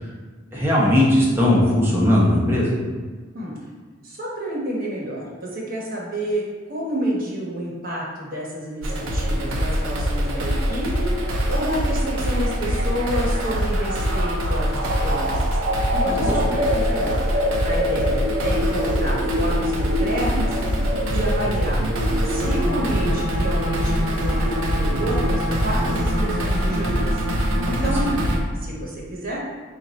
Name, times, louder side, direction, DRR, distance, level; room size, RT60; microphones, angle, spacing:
voice 1, 0.5-2.7 16.0-16.6 28.0-28.1, left 1 dB, 10° right, -6 dB, 0.9 m, -19 dB
voice 2, 4.0-6.4 6.7-17.2 17.6-20.5 21.1-21.8 22.2-27.2 27.7-28.1 28.6-29.4, right 1 dB, 45° right, -4 dB, 1.1 m, -29 dB
sound 1, 8.8-28.4, equal, 70° right, 0.6 m, -23 dB
4.3 x 2.5 x 4.1 m, 1.4 s
head